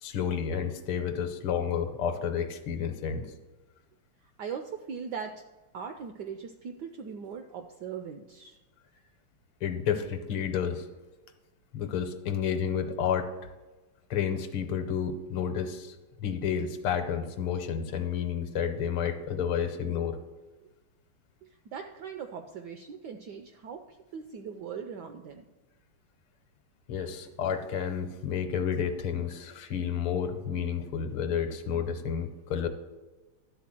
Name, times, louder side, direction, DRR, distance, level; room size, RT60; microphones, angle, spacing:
voice 1, 0.0-3.3 9.6-10.9 11.7-13.3 14.1-16.0 16.2-20.2 26.9-32.7, left 8 dB, 75° left, 8 dB, 1.7 m, -30 dB
voice 2, 4.2-5.4 5.7-8.6 21.6-25.5, right 6 dB, 80° right, 6 dB, 0.9 m, -40 dB
11.5 x 4.2 x 7.5 m, 1.2 s
omnidirectional pair, 2.4 m